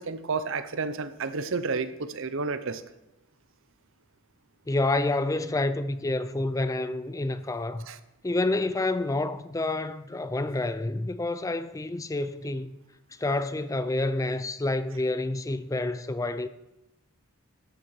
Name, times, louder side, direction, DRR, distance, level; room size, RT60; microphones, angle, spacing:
voice 1, 0.0-2.8 7.9-8.0, right 4 dB, 60° right, 0.7 m, -31 dB
voice 2, 4.7-7.9 8.2-12.8 13.2-16.5, left 2 dB, 15° left, 0.4 m, -28 dB
13.0 x 9.3 x 4.8 m
head